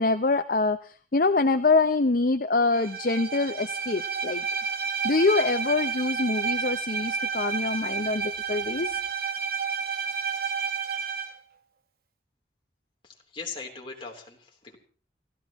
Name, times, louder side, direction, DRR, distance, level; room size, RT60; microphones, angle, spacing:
voice 1, 0.0-4.4 5.0-9.0, left 3 dB, 50° left, 9 dB, 0.6 m, -25 dB
Bowed string instrument, 2.7-11.4, right 6 dB, 55° right, 1.4 m, -30 dB
voice 2, 13.0-14.8, left 4 dB, 30° left, 0 dB, 3.3 m, -40 dB
29.0 x 14.0 x 3.0 m, 0.40 s
head